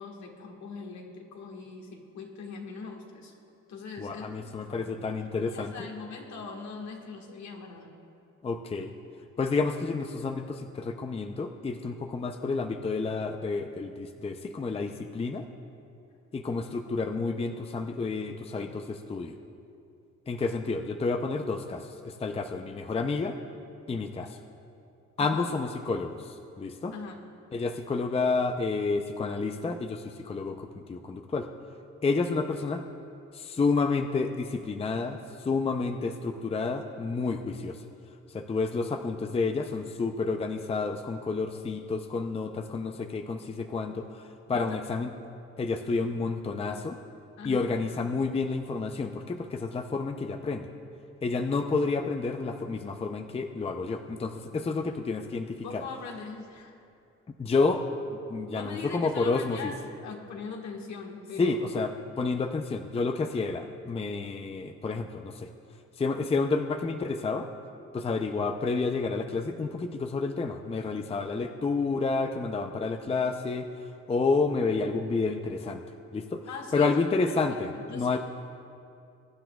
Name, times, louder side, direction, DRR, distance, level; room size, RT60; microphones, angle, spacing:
voice 1, 0.0-3.3 3.7-4.9 5.5-7.9 25.2-25.5 26.9-27.2 44.5-44.8 47.4-47.7 55.6-56.7 58.5-61.6 76.5-77.0 77.9-78.2, left 4 dB, 65° left, 1 dB, 1.7 m, -41 dB
voice 2, 4.0-5.9 8.4-8.9 9.4-15.4 16.3-19.4 20.3-23.4 23.9-24.4 25.2-26.9 27.5-31.5 32.0-32.8 33.3-37.8 38.3-45.1 45.6-47.0 47.4-50.7 51.2-55.8 57.4-57.8 58.3-59.7 61.4-65.5 66.0-67.5 67.9-73.7 74.1-75.8 76.1-78.2, left 4 dB, 20° left, 6 dB, 0.5 m, -30 dB
22.0 x 10.0 x 2.3 m, 2.5 s
cardioid pair, 90°, 30 cm